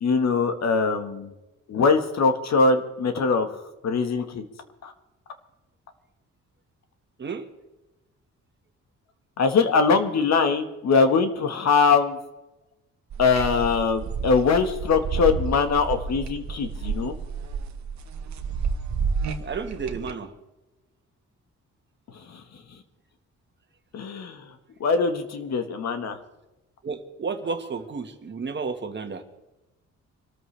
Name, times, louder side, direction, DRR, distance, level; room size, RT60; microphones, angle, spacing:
voice 1, 0.0-1.3 1.7-3.5 3.8-4.5 4.8-4.9 9.4-12.2 13.2-17.2 22.1-22.4 23.9-24.5 24.8-26.2, left 4 dB, 65° left, 7 dB, 1.7 m, -22 dB
sound 1, 13.1-20.1, right 5 dB, 70° right, 1.3 m, -30 dB
voice 2, 19.4-20.3 26.8-29.2, right 5 dB, 40° right, 7 dB, 1.5 m, -32 dB
25.5 x 13.5 x 3.4 m, 1.0 s
cardioid pair, 125°, 29 cm